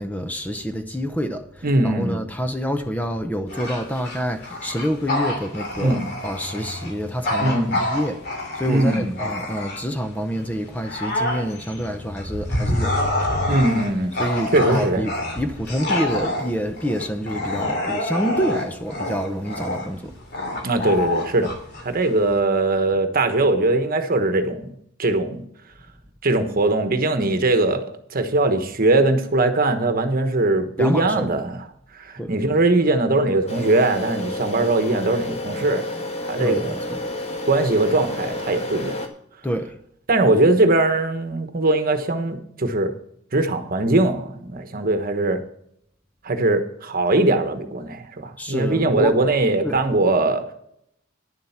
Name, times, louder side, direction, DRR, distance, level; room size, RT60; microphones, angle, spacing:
voice 1, 0.0-6.0 6.2-13.6 14.2-20.1 30.8-31.3 32.2-32.3 36.4-37.0 39.4-39.7 48.4-49.2 49.6-49.8, equal, 10° left, 0.7 m, -27 dB
voice 2, 1.6-2.2 5.8-6.1 7.4-7.9 8.7-9.1 13.5-14.1 14.5-15.1 20.6-21.5 21.8-24.7 25.0-25.5 26.2-31.6 31.9-35.9 36.2-36.8 37.5-39.0 40.1-42.9 43.3-45.4 46.2-50.4, right 2 dB, 45° right, 1.2 m, -20 dB
Bark / Growling, 3.5-10.0 10.5-22.4, left 1 dB, 55° left, 2.8 m, -27 dB
sound 1, 33.5-39.1, left 1 dB, 35° left, 1.5 m, -30 dB
10.5 x 7.5 x 5.8 m
head